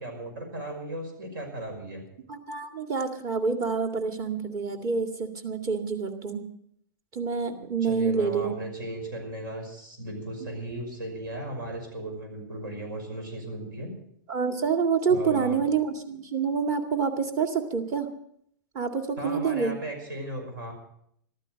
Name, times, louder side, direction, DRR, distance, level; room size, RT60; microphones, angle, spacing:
voice 1, 0.0-2.0 7.8-13.9 15.1-15.6 19.2-20.7, right 1 dB, 80° right, 4 dB, 5.8 m, -36 dB
voice 2, 2.3-6.4 7.1-8.6 10.4-10.5 14.3-18.1 18.7-19.7, right 5 dB, 35° right, 5 dB, 2.2 m, -27 dB
14.5 x 12.5 x 6.5 m, 0.71 s
hypercardioid pair, 125°, 11 cm